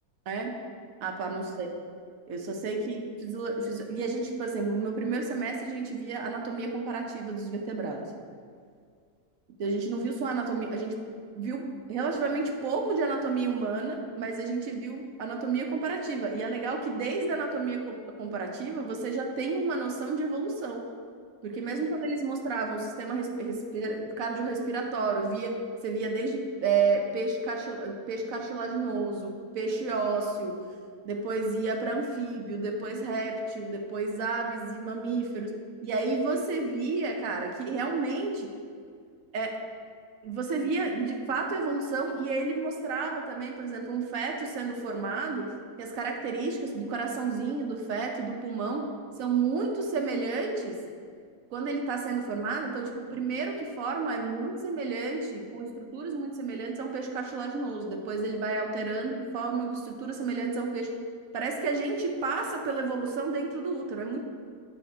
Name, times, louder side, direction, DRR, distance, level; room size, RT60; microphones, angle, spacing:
voice 1, 1.0-1.7 2.3-8.1 9.6-10.9 11.4-20.8 21.4-25.6 25.8-30.6 31.0-35.5 35.8-38.5 39.3-39.6 40.2-45.5 45.8-48.9 49.2-50.8 51.5-60.9 61.3-64.2, right 4 dB, 65° right, 2 dB, 1.0 m, -31 dB
8.6 x 3.6 x 4.7 m, 2.1 s
omnidirectional pair, 1.8 m